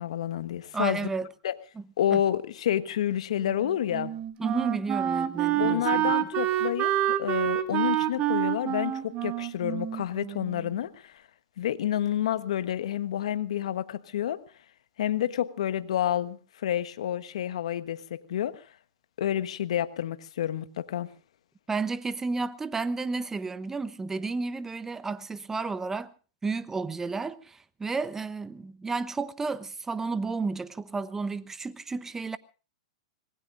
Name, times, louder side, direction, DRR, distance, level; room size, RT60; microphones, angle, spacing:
voice 1, 0.0-1.0 1.4-1.6 2.0-4.1 5.6-6.9 7.2-11.1 11.6-14.4 15.0-18.6 19.2-21.1, left 11 dB, 70° left, 1.3 m, -29 dB
voice 2, 0.7-1.3 1.8-1.9 2.1-2.2 4.4-6.1 21.7-26.1 26.4-32.4, right 4 dB, 10° right, 1.0 m, -32 dB
Wind instrument woodwind instrument, 3.4-10.7, right 13 dB, 35° right, 1.5 m, -28 dB
26.0 x 19.5 x 2.6 m
hypercardioid pair, 115°, 3 cm